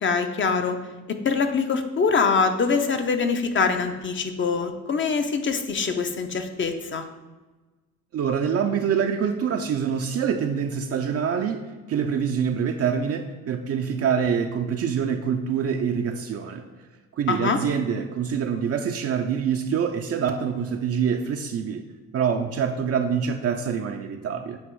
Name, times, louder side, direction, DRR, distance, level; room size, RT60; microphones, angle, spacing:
voice 1, 0.0-0.8 1.1-7.1 17.3-17.6, left 5 dB, 40° left, 7 dB, 0.7 m, -24 dB
voice 2, 8.1-16.7 17.2-21.8 22.1-24.6, right 7 dB, 55° right, 4 dB, 0.5 m, -25 dB
7.9 x 3.0 x 4.7 m, 1.2 s
cardioid pair, 90°, 30 cm